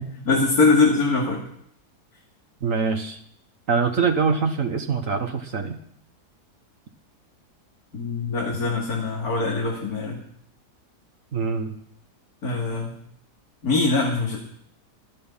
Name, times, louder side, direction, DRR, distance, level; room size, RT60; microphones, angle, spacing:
voice 1, 0.1-1.4 7.9-10.2 12.4-12.9 13.6-14.4, left 3 dB, 65° left, -2 dB, 2.9 m, -22 dB
voice 2, 2.6-3.2 3.7-5.8 11.3-11.7, right 5 dB, 55° right, 5 dB, 1.6 m, -24 dB
17.5 x 13.0 x 5.7 m, 0.69 s
omnidirectional pair, 1.7 m